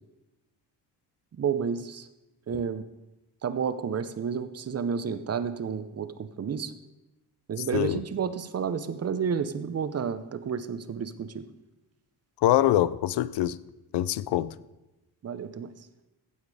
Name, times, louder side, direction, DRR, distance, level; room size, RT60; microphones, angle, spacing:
voice 1, 1.4-2.1 2.5-2.8 3.4-6.7 7.5-11.4 15.2-15.7, right 6 dB, 35° right, 0.6 m, -31 dB
voice 2, 12.4-13.6 13.9-14.5, left 13 dB, 75° left, 0.5 m, -24 dB
16.0 x 7.2 x 4.8 m
wide cardioid pair, 150°, 42 cm